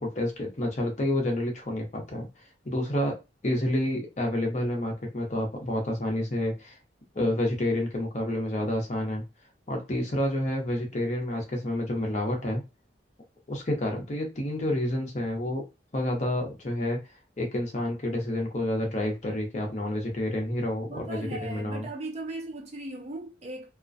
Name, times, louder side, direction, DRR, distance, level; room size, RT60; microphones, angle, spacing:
voice 1, 0.0-2.3 2.6-3.1 3.4-6.8 7.1-9.2 9.7-12.6 13.5-15.6 15.9-17.0 17.4-21.9, left 1 dB, 40° left, 0.7 m, -29 dB
voice 2, 20.8-23.7, right 2 dB, 35° right, 0.4 m, -38 dB
2.4 x 2.1 x 2.5 m
head